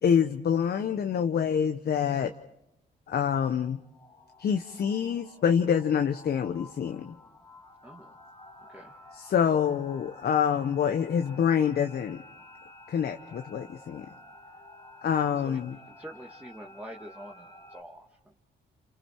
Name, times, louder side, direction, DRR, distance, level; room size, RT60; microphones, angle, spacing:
voice 1, 0.0-2.3 3.1-3.8 4.4-7.2 9.1-12.2 12.9-14.1 15.0-15.8, left 8 dB, 60° left, 7 dB, 0.9 m, -26 dB
sound 1, 3.5-17.8, left 2 dB, 20° left, 3.0 m, -51 dB
voice 2, 7.8-8.1 8.6-8.9 15.4-15.6 15.9-18.4, right 1 dB, 10° right, 0 dB, 1.8 m, -46 dB
29.0 x 28.0 x 4.5 m, 0.88 s
cardioid pair, 85°, 18 cm